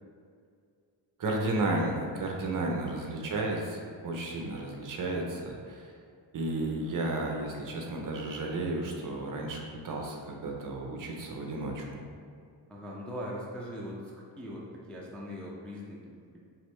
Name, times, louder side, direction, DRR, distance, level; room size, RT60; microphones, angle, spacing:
voice 1, 1.2-6.0 6.3-12.0, right 2 dB, 45° right, 1 dB, 0.7 m, -33 dB
voice 2, 12.7-16.4, equal, 5° left, -4 dB, 0.3 m, -41 dB
5.0 x 3.0 x 3.2 m, 2.3 s
wide cardioid pair, 155°, 44 cm